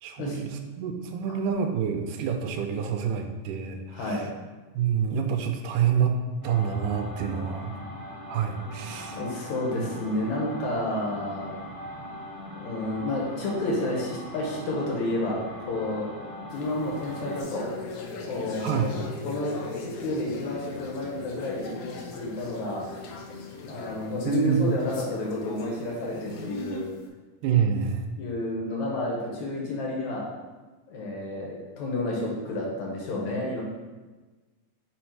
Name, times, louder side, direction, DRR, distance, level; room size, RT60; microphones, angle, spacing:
voice 1, 0.0-4.3 4.7-6.2 6.4-7.8 8.3-9.2 9.8-9.9 18.6-18.9 24.2-24.8 27.4-28.1, right 7 dB, 85° right, 5 dB, 2.2 m, -27 dB
voice 2, 3.9-4.3 8.9-11.6 12.6-15.4 15.7-16.0 16.5-17.6 18.3-22.9 23.7-26.9 28.2-30.3 30.9-33.6, left 1 dB, 70° left, -3 dB, 2.4 m, -30 dB
sound 1, 6.4-17.4, equal, 35° left, 0.8 m, -41 dB
sound 2, 16.5-27.0, left 3 dB, 85° left, 1.3 m, -39 dB
5.3 x 4.3 x 4.6 m, 1.3 s
omnidirectional pair, 3.7 m